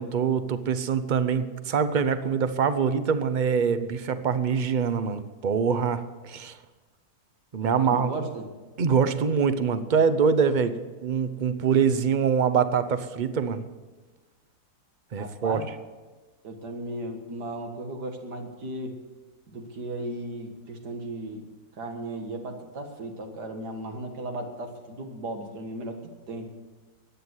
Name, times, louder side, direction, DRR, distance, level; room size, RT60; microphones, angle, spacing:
voice 1, 0.0-6.6 7.5-8.1 8.8-10.7 11.0-13.6 15.1-15.6, right 6 dB, 50° right, 12 dB, 0.5 m, -24 dB
voice 2, 7.6-8.4 15.2-15.7 16.4-19.0 19.5-21.4 21.7-26.5, right 1 dB, 70° right, 4 dB, 2.2 m, -36 dB
14.5 x 10.0 x 8.0 m, 1.3 s
omnidirectional pair, 1.8 m